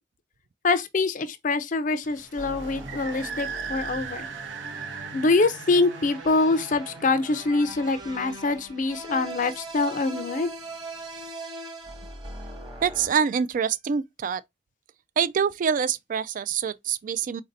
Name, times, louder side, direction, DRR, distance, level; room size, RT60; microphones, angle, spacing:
voice 1, 0.6-4.3 5.1-10.5, left 3 dB, 45° left, 0.5 m, -24 dB
sound 1, 2.0-9.4, right 5 dB, 85° right, 0.7 m, -39 dB
sound 2, 2.4-13.1, right 2 dB, 25° right, 1.1 m, -41 dB
voice 2, 12.8-14.4 15.2-17.4, right 7 dB, 45° right, 0.3 m, -25 dB
4.1 x 2.6 x 3.9 m
head